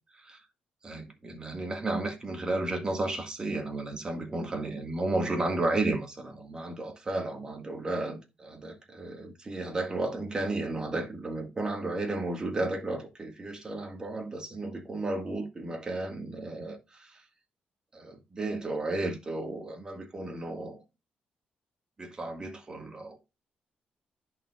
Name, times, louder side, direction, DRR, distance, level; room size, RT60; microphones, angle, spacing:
voice 1, 0.1-0.4 0.8-17.2 17.9-20.8 22.0-23.2, right 2 dB, 25° right, 1.9 m, -33 dB
10.5 x 4.7 x 2.5 m
cardioid pair, 115°, 3 cm